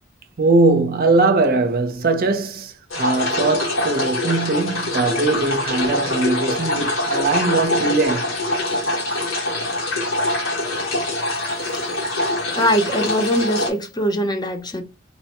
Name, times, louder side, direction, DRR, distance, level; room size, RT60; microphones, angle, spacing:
voice 1, 0.4-8.4, right 3 dB, 50° right, 0.6 m, -20 dB
sound 1, 2.9-13.7, left 1 dB, 85° left, 1.5 m, -24 dB
voice 2, 12.5-14.8, equal, 20° left, 0.7 m, -21 dB
4.2 x 2.1 x 2.9 m
head